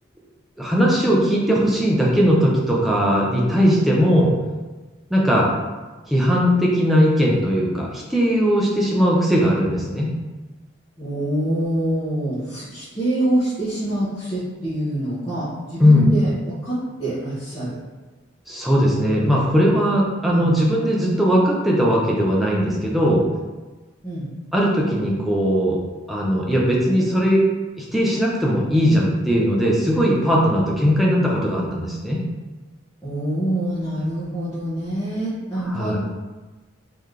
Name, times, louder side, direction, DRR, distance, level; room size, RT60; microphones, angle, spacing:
voice 1, 0.6-4.3 5.1-5.5 6.1-10.1 15.8-16.2 18.5-23.2 24.5-25.8 26.1-27.4 27.8-32.2 35.7-36.0, equal, ahead, -4 dB, 0.6 m, -19 dB
voice 2, 11.0-17.8 19.1-19.2 20.3-20.5 24.0-24.2 33.0-36.0, right 1 dB, 15° left, -13 dB, 0.9 m, -25 dB
3.9 x 2.9 x 3.3 m, 1.2 s
head